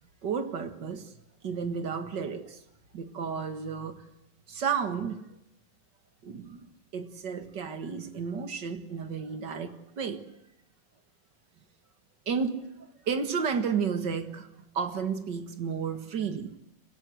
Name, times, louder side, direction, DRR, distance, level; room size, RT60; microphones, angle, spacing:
voice 1, 0.2-1.1 1.4-2.6 2.9-4.0 4.5-5.3 6.2-10.2 12.3-12.7 13.1-14.5 14.7-16.5, right 6 dB, 90° right, 2.4 m, -32 dB
24.5 x 16.5 x 7.8 m
omnidirectional pair, 1.9 m